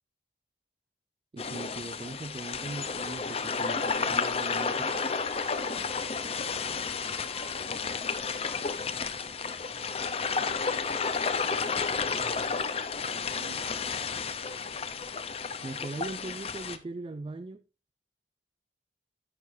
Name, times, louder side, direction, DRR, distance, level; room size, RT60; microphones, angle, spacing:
voice 1, 1.3-4.9 15.6-17.6, right 2 dB, 30° right, 0.4 m, -40 dB
sound 1, 1.4-16.8, left 5 dB, 35° left, 0.7 m, -32 dB
Bowed string instrument, 2.6-7.6, right 2 dB, ahead, 2.9 m, -52 dB
voice 2, 11.9-12.7 13.1-14.6, right 2 dB, 55° right, 4.5 m, -52 dB
11.0 x 8.5 x 2.7 m
head